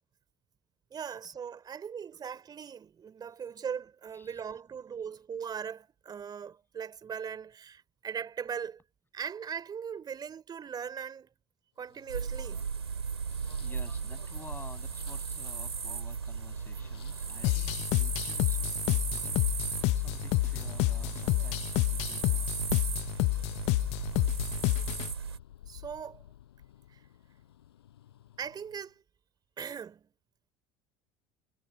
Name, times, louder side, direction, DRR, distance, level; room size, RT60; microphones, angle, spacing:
voice 1, 0.9-8.8 9.1-11.3 11.8-12.6 25.7-26.2 26.9-27.0 28.4-29.0 29.6-30.1, right 7 dB, 30° right, 3.1 m, -39 dB
voice 2, 4.1-4.6 12.4-12.5 13.6-19.5 19.9-22.6, left 3 dB, 15° left, 7.0 m, -52 dB
sound 1, 11.8-28.9, left 11 dB, 75° left, 6.2 m, -54 dB
sound 2, 12.1-25.4, right 6 dB, 85° right, 4.3 m, -36 dB
sound 3, 17.4-25.1, left 24 dB, 55° left, 0.7 m, -29 dB
figure-of-eight pair, 70°, 13 cm